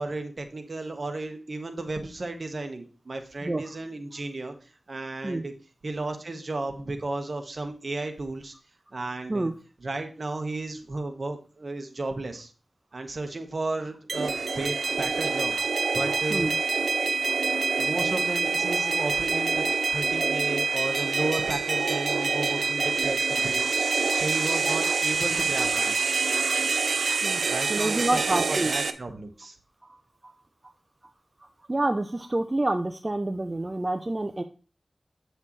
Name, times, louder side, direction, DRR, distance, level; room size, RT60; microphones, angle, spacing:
voice 1, 0.0-4.5 4.9-5.5 5.8-8.5 8.9-9.5 9.8-12.5 12.9-16.5 17.8-19.6 19.9-23.7 24.1-25.9 27.4-29.5, right 2 dB, 60° right, 5 dB, 1.4 m, -34 dB
voice 2, 3.4-3.7 5.2-5.4 9.3-9.6 16.3-16.5 27.2-28.7 29.8-30.0 30.2-30.3 31.7-34.4, right 2 dB, 35° right, 7 dB, 0.6 m, -28 dB
sound 1, 14.1-28.9, right 4 dB, 90° right, 0.6 m, -26 dB
8.8 x 6.5 x 3.2 m, 0.36 s
wide cardioid pair, 50°, 0 cm